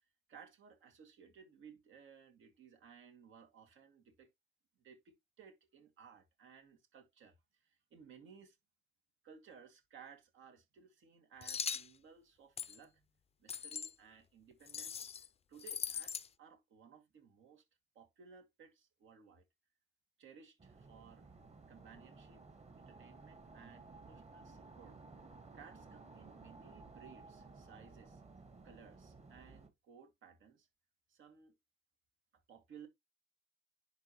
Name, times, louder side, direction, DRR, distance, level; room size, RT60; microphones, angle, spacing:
voice 1, 0.0-4.3 4.8-8.6 9.2-13.1 13.4-17.6 17.9-19.5 20.2-21.3 21.7-22.4 22.7-25.0 25.5-28.2 28.6-30.7 31.1-31.5 32.5-32.9, right 7 dB, 80° right, 2.3 m, -59 dB
sound 1, 11.4-11.9 12.6-12.8 13.5-13.9 14.7-15.3 15.6-16.3, left 7 dB, 30° left, 0.4 m, -40 dB
sound 2, 20.6-29.7, right 3 dB, 35° right, 1.6 m, -56 dB
10.5 x 3.9 x 3.1 m
cardioid pair, 90°, 20 cm